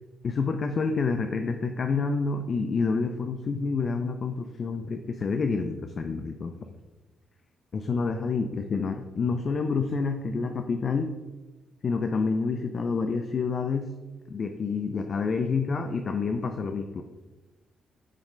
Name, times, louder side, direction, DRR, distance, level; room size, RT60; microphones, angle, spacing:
voice 1, 0.2-6.5 7.7-11.1 11.8-13.9 14.3-17.0, left 4 dB, 40° left, 6 dB, 0.4 m, -28 dB
7.4 x 3.2 x 5.0 m, 1.1 s
cardioid pair, 130°, 0 cm